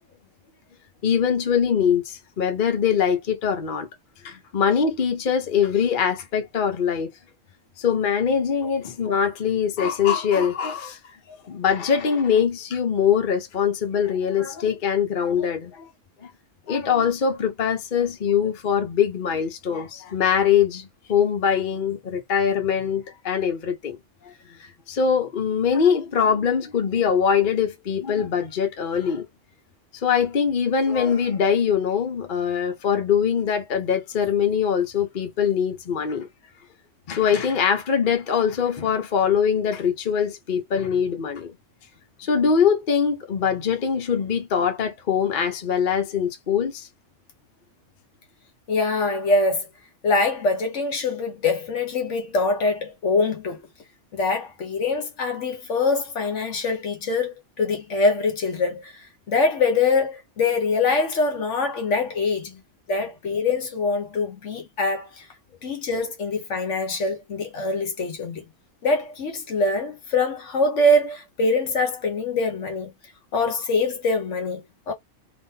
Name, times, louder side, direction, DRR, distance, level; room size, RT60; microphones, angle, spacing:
voice 1, 1.0-3.9 4.2-7.1 7.8-11.0 11.5-15.9 16.2-16.3 16.7-24.0 24.2-24.3 24.6-29.2 30.0-36.3 37.1-41.5 42.2-46.9 62.5-62.6, left 7 dB, 40° left, 0.8 m, -22 dB
voice 2, 48.7-49.7 50.0-53.7 54.1-62.5 62.9-65.3 65.6-68.4 68.8-72.9 73.3-74.9, left 3 dB, 60° left, 1.1 m, -24 dB
3.5 x 2.6 x 2.7 m
omnidirectional pair, 1.5 m